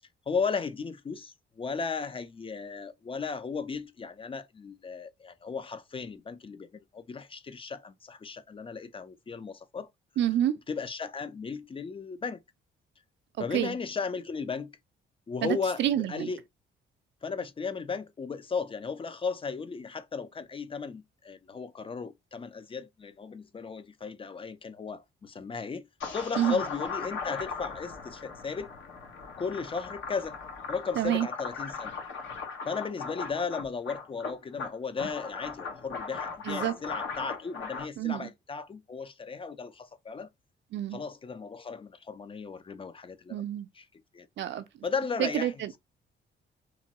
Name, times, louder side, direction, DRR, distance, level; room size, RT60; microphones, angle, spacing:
voice 1, 0.3-6.7 6.9-9.9 10.7-12.4 13.4-14.7 15.3-15.8 16.1-16.4 17.2-28.7 29.4-30.4 30.7-31.9 32.7-40.3 40.9-43.4 43.8-43.9 44.1-44.3 44.8-45.5, left 5 dB, 25° left, 0.4 m, -35 dB
voice 2, 10.2-10.5 13.5-13.8 15.4-16.3 26.4-26.6 31.0-31.3 36.4-36.7 38.0-38.3 40.7-41.0 43.3-43.7 44.4-44.6 45.2-45.8, right 11 dB, 65° right, 0.4 m, -28 dB
sound 1, 26.0-37.8, left 5 dB, 70° left, 1.0 m, -38 dB
3.0 x 2.2 x 2.7 m
cardioid pair, 90°, 20 cm